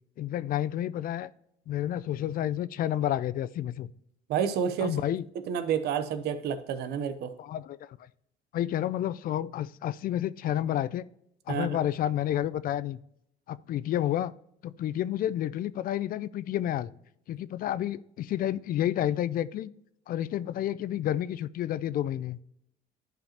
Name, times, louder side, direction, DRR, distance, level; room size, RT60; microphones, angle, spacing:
voice 1, 0.2-1.3 1.7-3.9 4.8-5.2 7.4-8.0 8.5-11.1 11.5-13.0 13.5-14.3 14.6-16.9 17.3-19.7 20.1-22.4, left 12 dB, 55° left, 18 dB, 0.4 m, -30 dB
voice 2, 4.3-5.0 5.5-7.3 11.5-11.7, right 8 dB, 75° right, 11 dB, 0.8 m, -29 dB
11.5 x 5.1 x 2.9 m, 0.74 s
cardioid pair, 110°, 17 cm